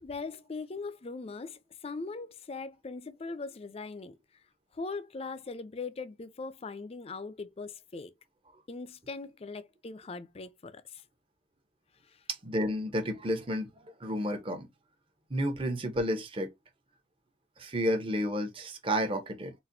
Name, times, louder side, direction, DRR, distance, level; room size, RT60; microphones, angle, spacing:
voice 1, 0.0-4.2 4.7-8.1 8.7-11.0 12.1-12.2, left 4 dB, 35° left, 0.5 m, -40 dB
voice 2, 12.3-14.7 15.3-16.5 17.6-19.5, equal, 30° right, 0.8 m, -31 dB
4.1 x 2.5 x 2.6 m
head